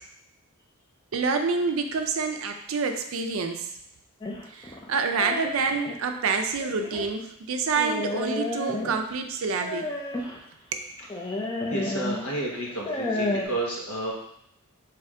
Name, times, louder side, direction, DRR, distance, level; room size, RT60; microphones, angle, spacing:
voice 1, 1.1-3.6 4.5-9.8 10.7-10.8, right 4 dB, 65° right, 5 dB, 0.4 m, -27 dB
sound 1, 4.2-6.0 6.6-7.1 7.8-9.1 9.6-10.4 11.1-12.3 12.7-13.5, left 2 dB, 20° left, 0.5 m, -31 dB
voice 2, 11.2-14.1, right 1 dB, 80° left, -3 dB, 1.1 m, -32 dB
3.5 x 3.3 x 3.6 m, 0.76 s
head